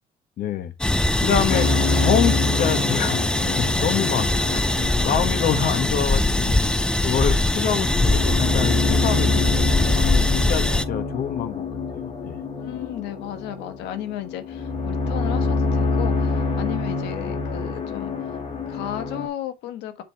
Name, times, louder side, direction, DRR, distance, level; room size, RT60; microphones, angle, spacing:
voice 1, 0.4-0.7 1.2-4.6 5.0-6.6 7.0-11.6 11.9-12.4, left 8 dB, 60° left, 1.3 m, -26 dB
sound 1, 0.8-10.8, left 1 dB, 5° left, 0.5 m, -22 dB
sound 2, 1.5-19.3, left 3 dB, 45° left, 2.3 m, -26 dB
voice 2, 12.5-18.4 18.7-20.0, left 11 dB, 90° left, 1.3 m, -34 dB
7.5 x 3.7 x 4.2 m
cardioid pair, 110°, 17 cm